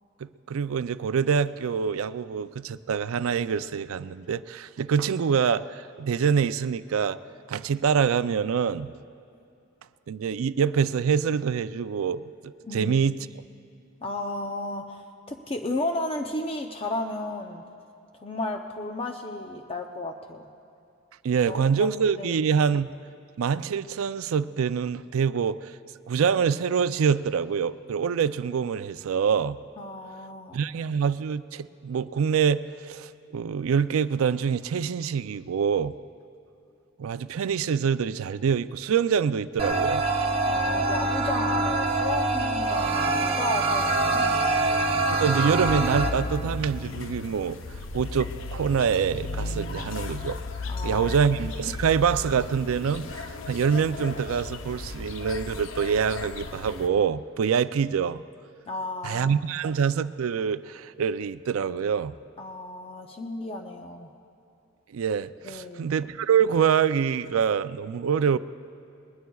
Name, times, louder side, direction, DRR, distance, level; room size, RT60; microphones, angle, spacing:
voice 1, 0.2-7.2 7.5-8.9 10.1-13.3 21.2-22.9 23.4-25.7 26.1-29.6 30.5-36.0 37.0-40.1 45.1-47.6 47.9-50.4 50.8-58.2 59.0-62.1 64.9-68.4, right 7 dB, 90° right, 15 dB, 0.4 m, -25 dB
voice 2, 12.6-13.0 14.0-17.6 18.2-20.5 21.5-21.7 22.2-22.4 29.8-30.6 40.5-44.7 50.7-51.2 58.7-59.3 62.4-64.1 65.4-65.9, left 2 dB, 30° left, 3 dB, 0.6 m, -33 dB
sound 1, 39.6-46.1, right 2 dB, 30° right, 0.8 m, -24 dB
sound 2, 45.7-56.9, left 3 dB, 70° left, 0.7 m, -35 dB
20.5 x 20.5 x 2.3 m, 2.7 s
head